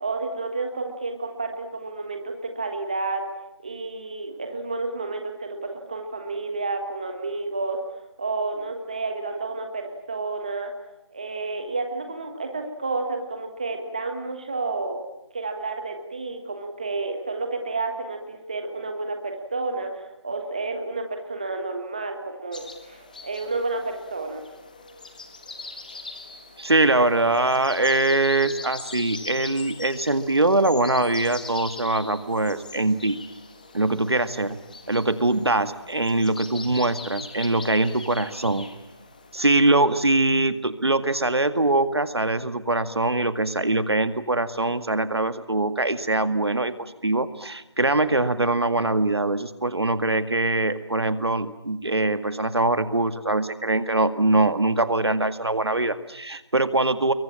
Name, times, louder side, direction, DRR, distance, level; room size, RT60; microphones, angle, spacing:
voice 1, 0.0-3.2 3.6-7.8 8.2-10.7 11.1-15.0 15.3-24.4, right 3 dB, 15° right, 5 dB, 1.4 m, -30 dB
sound 1, 22.5-39.4, left 3 dB, 20° left, 1.5 m, -42 dB
voice 2, 26.6-33.2 33.7-34.6 34.9-38.7 39.3-57.1, right 2 dB, 65° right, 11 dB, 2.0 m, -23 dB
27.5 x 23.0 x 8.7 m, 0.91 s
figure-of-eight pair, 175°, 14 cm